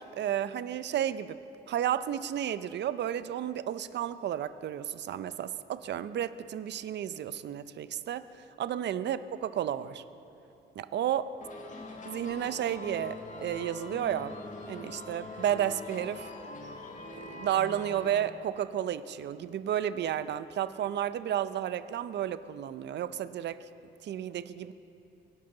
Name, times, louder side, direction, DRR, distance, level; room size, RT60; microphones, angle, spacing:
voice 1, 0.0-1.4 1.7-10.0 10.8-11.3 12.1-14.4 14.7-16.3 17.1-23.6 24.0-24.7, right 10 dB, 60° right, 14 dB, 0.6 m, -32 dB
sound 1, 11.4-18.1, left 2 dB, 40° left, 1.6 m, -43 dB
23.5 x 11.5 x 3.9 m, 2.8 s
cardioid pair, 90°, 20 cm